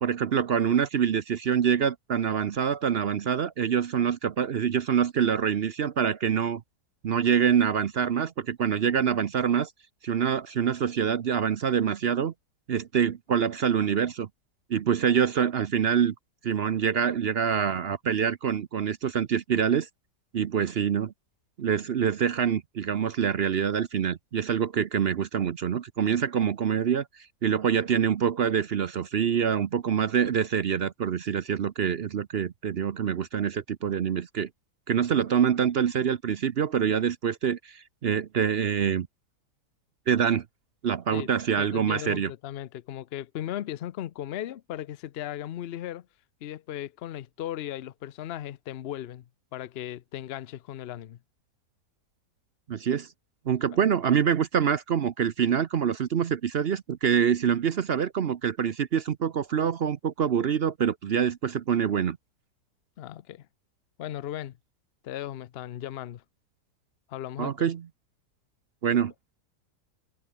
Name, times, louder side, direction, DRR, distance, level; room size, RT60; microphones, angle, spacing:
voice 1, 0.0-6.6 7.0-9.7 10.0-12.3 12.7-14.3 14.7-16.1 16.4-19.9 20.3-21.1 21.6-34.5 34.9-39.1 40.1-40.4 40.8-42.3 52.7-53.1 53.5-62.2 67.4-67.8 68.8-69.1, right 8 dB, 55° right, 0.7 m, -25 dB
voice 2, 41.6-46.1 46.4-49.3 49.5-51.2 53.7-53.8 63.0-63.5 64.0-64.6 65.0-66.2 67.1-67.5, left 12 dB, 90° left, 0.5 m, -37 dB
omnidirectional pair, 1.8 m